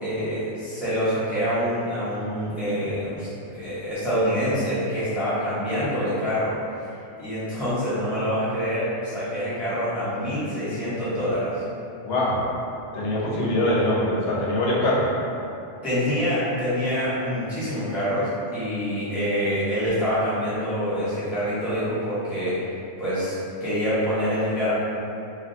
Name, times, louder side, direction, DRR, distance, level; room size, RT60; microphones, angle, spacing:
voice 1, 0.0-6.5 7.2-11.6 15.8-22.6 23.0-24.7, equal, ahead, -13 dB, 0.4 m, -26 dB
voice 2, 12.0-12.6 12.9-15.1, left 1 dB, 70° left, -6 dB, 0.8 m, -23 dB
2.2 x 2.2 x 2.6 m, 2.7 s
omnidirectional pair, 1.3 m